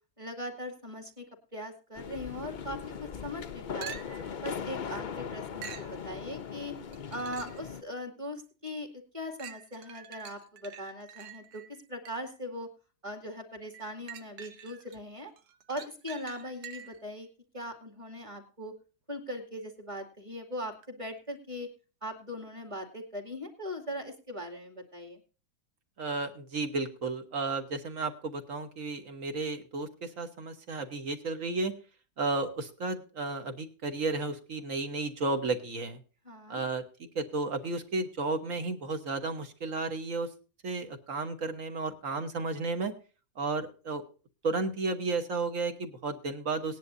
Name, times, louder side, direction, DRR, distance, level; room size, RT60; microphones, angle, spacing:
voice 1, 0.2-1.3 1.5-2.8 3.2-4.0 4.4-6.8 7.1-12.7 13.0-15.3 15.7-17.3 17.5-18.7 19.1-21.7 22.0-25.2 36.2-36.6, equal, 20° right, 3 dB, 2.4 m, -40 dB
sound 1, 1.9-7.8, left 7 dB, 80° left, 0.4 m, -39 dB
sound 2, 3.8-4.4 5.6-6.0 6.9-7.7 8.3-8.4 9.4-12.4 13.7-15.0 15.4-17.1 20.8-20.9, right 8 dB, 90° right, 1.6 m, -46 dB
voice 2, 26.0-31.7 32.2-36.0 36.5-36.8 37.1-40.3 40.6-42.9 43.4-44.0 44.4-46.8, right 3 dB, 50° right, 7 dB, 1.6 m, -33 dB
18.5 x 10.5 x 2.6 m, 0.35 s
omnidirectional pair, 1.8 m